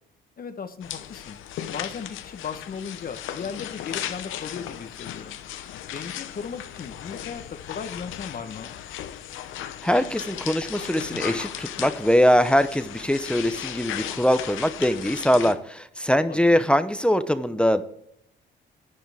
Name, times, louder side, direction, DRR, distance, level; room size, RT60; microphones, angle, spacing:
voice 1, 0.4-1.4 1.6-5.4 5.9-8.8 16.2-16.6, left 6 dB, 45° left, 9 dB, 1.1 m, -36 dB
sound 1, 0.8-15.5, left 11 dB, 85° left, 0.9 m, -36 dB
voice 2, 9.8-17.8, equal, 5° left, 11 dB, 0.8 m, -22 dB
11.0 x 9.9 x 3.5 m, 0.71 s
cardioid pair, 90°, 20 cm